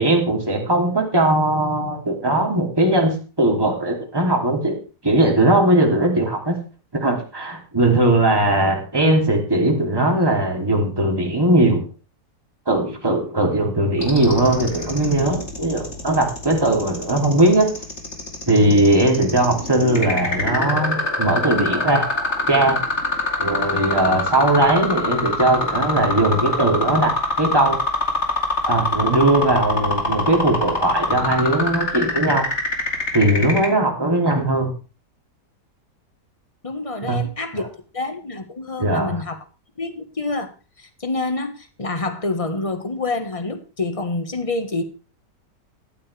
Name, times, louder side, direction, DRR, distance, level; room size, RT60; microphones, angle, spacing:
voice 1, 0.0-4.7 5.0-6.6 6.9-11.8 12.7-17.7 18.5-22.1 22.5-22.8 23.4-27.8 28.6-32.5 33.1-34.7 37.0-37.2 38.8-39.2, right 1 dB, 15° right, 3.0 m, -19 dB
sound 1, 14.0-33.7, left 2 dB, 40° left, 2.8 m, -24 dB
voice 2, 36.6-37.6 37.9-39.4 39.8-40.5 40.8-44.8, left 2 dB, 20° left, 1.4 m, -27 dB
14.5 x 12.0 x 3.4 m
omnidirectional pair, 1.8 m